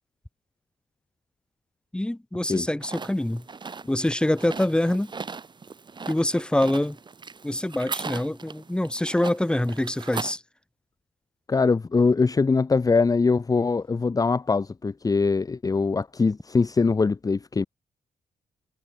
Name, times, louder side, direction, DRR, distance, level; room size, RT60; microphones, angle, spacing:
voice 1, 1.9-3.4 3.9-5.1 6.1-7.0 7.4-10.4, left 1 dB, 5° left, 2.4 m, -25 dB
sound 1, 2.8-10.4, right 4 dB, 30° right, 3.5 m, -38 dB
voice 2, 11.5-17.6, left 4 dB, 25° left, 1.3 m, -22 dB
wide cardioid pair, 145°, 15 cm